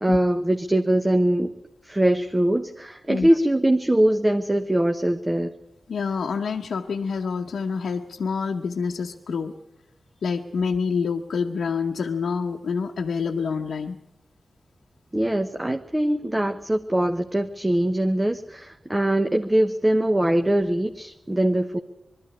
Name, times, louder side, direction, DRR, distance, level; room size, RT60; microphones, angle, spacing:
voice 1, 0.0-1.5 1.8-5.5 15.1-21.8, right 1 dB, 20° right, 6 dB, 1.0 m, -22 dB
voice 2, 5.9-9.5 10.2-14.0, left 5 dB, 85° left, 1 dB, 0.9 m, -27 dB
21.0 x 13.5 x 9.8 m, 0.93 s
cardioid pair, 55°, 0 cm